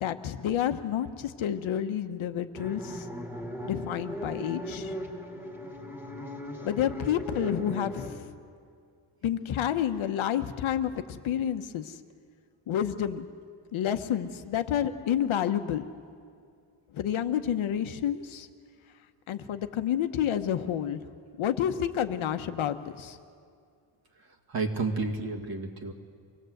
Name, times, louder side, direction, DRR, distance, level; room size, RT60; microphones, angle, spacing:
voice 1, 0.0-3.0 3.6-4.9 6.6-8.2 9.2-11.9 12.7-13.3 13.7-15.9 16.9-18.5 19.3-21.0 21.4-23.2, left 10 dB, 70° left, 8 dB, 1.1 m, -29 dB
sound 1, 2.5-8.1, equal, 5° right, 2.2 m, -38 dB
voice 2, 24.2-25.9, right 3 dB, 45° right, 2 dB, 2.2 m, -31 dB
25.5 x 18.5 x 7.9 m, 2.3 s
wide cardioid pair, 175°, 50 cm